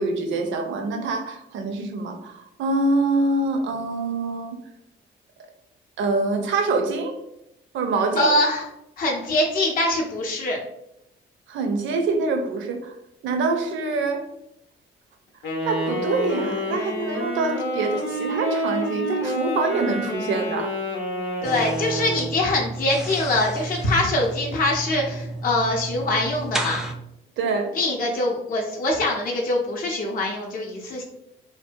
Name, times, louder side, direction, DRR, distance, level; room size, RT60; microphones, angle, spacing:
voice 1, 0.0-4.6 6.0-7.2 7.7-8.3 11.5-12.9 13.2-14.3 15.6-20.7 27.4-27.8, right 3 dB, 75° right, 5 dB, 0.5 m, -25 dB
voice 2, 8.2-8.7 9.0-10.6 21.4-26.8 27.7-31.0, left 1 dB, 45° left, -1 dB, 0.5 m, -23 dB
Wind instrument woodwind instrument, 15.4-22.4, equal, 90° left, 0.7 m, -28 dB
sound 1, 21.4-26.9, right 2 dB, ahead, 0.3 m, -32 dB
2.6 x 2.2 x 2.5 m, 0.80 s
cardioid pair, 90°, 20 cm